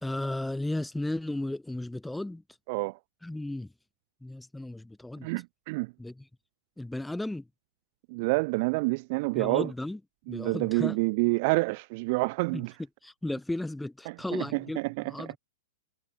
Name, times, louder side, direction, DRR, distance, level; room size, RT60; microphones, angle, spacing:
voice 1, 0.0-2.4 3.2-3.7 4.2-5.3 6.0-6.2 6.8-7.5 9.4-10.0 10.3-11.0 12.5-12.6 13.0-14.8 15.0-15.4, left 1 dB, 5° left, 1.9 m, -34 dB
voice 2, 2.7-3.0 5.2-5.9 8.1-9.7 10.3-12.7 14.1-15.4, right 27 dB, 40° right, 0.3 m, -28 dB
figure-of-eight pair, 105°, 0 cm